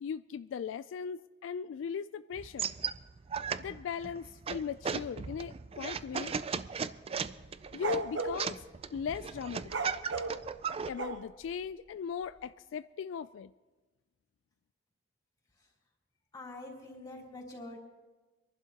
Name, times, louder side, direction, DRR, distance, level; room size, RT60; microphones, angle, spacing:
voice 1, 0.0-2.7 3.6-6.4 7.7-8.6 8.9-9.7 10.9-13.5, left 7 dB, 80° left, 14 dB, 0.3 m, -38 dB
sound 1, 2.4-10.9, right 6 dB, 30° right, 0.4 m, -37 dB
sound 2, 7.3-8.4 9.6-11.5, right 4 dB, 70° right, 0.9 m, -35 dB
voice 2, 16.3-17.8, left 2 dB, 20° left, -3 dB, 3.4 m, -45 dB
25.5 x 11.5 x 2.9 m, 1.2 s
head